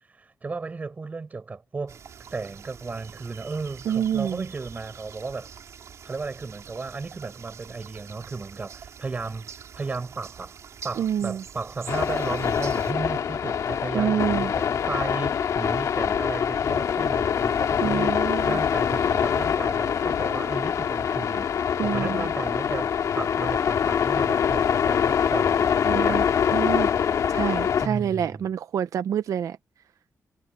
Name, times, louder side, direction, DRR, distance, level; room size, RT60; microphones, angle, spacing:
voice 1, 0.2-2.0 2.3-5.5 6.0-10.6 10.8-21.5 21.8-26.2 27.8-28.5, right 4 dB, 30° right, 4.6 m, -34 dB
sound 1, 1.9-12.9, right 7 dB, 65° right, 4.6 m, -45 dB
voice 2, 3.9-4.4 11.0-11.4 13.9-14.5 17.8-18.6 21.8-22.2 25.9-26.2 26.5-26.9 27.3-29.6, right 9 dB, 80° right, 0.6 m, -27 dB
sound 2, 11.9-27.9, left 8 dB, 75° left, 2.4 m, -24 dB
wide cardioid pair, 165°, 6 cm